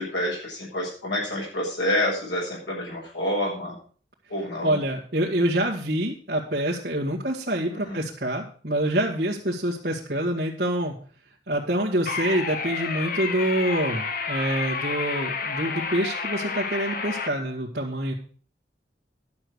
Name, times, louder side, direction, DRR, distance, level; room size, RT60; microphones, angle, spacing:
voice 1, 0.0-3.8 4.3-4.8 7.7-8.0, left 1 dB, 80° left, -3 dB, 6.8 m, -28 dB
voice 2, 4.6-11.0 11.5-18.1, right 1 dB, 55° right, -5 dB, 2.0 m, -26 dB
sound 1, 12.1-17.3, left 5 dB, 50° left, 1.1 m, -30 dB
11.5 x 6.9 x 6.3 m, 0.43 s
head